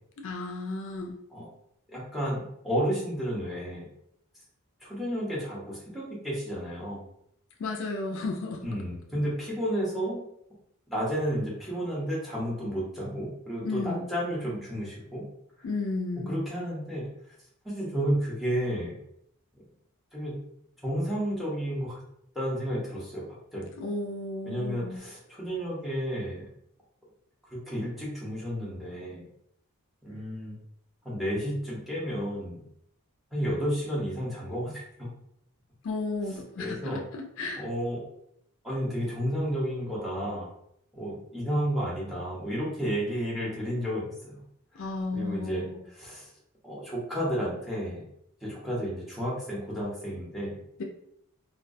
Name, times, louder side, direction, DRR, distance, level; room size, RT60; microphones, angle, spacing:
voice 1, 0.2-1.2 7.6-8.8 13.6-14.1 15.6-16.4 23.8-25.0 35.8-37.6 44.7-45.7 50.8-50.9, left 3 dB, 60° left, 3 dB, 0.4 m, -33 dB
voice 2, 1.9-3.9 4.8-7.0 8.6-10.2 10.9-15.2 16.3-17.0 17.6-19.0 20.1-20.3 20.8-22.0 22.3-23.2 23.5-23.7 24.4-26.5 27.7-29.2 30.0-30.5 31.0-32.6 33.3-35.1 36.6-37.0 37.6-38.0 38.6-40.5 40.9-44.4 44.7-44.8 45.1-45.6 46.0-46.3 46.6-48.0 48.4-50.6, equal, ahead, -6 dB, 0.7 m, -31 dB
2.3 x 2.2 x 2.5 m, 0.72 s
head